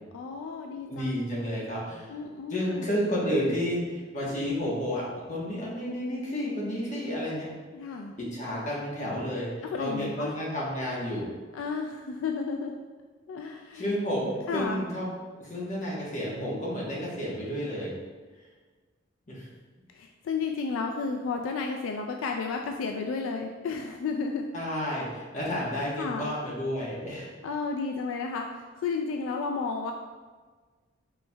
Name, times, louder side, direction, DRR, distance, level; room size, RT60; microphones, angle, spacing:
voice 1, 0.1-1.1 2.1-2.9 7.7-8.1 9.6-10.3 11.5-12.7 13.3-13.9 14.5-14.9 19.9-24.5 26.0-26.3 27.4-29.9, left 4 dB, 80° left, 3 dB, 0.3 m, -32 dB
voice 2, 0.9-2.1 2.5-7.5 8.2-9.5 9.8-11.3 13.7-15.1 15.4-17.9 19.3-19.5 24.5-27.3, equal, 40° left, -5 dB, 1.1 m, -31 dB
4.4 x 4.2 x 2.2 m, 1.4 s
head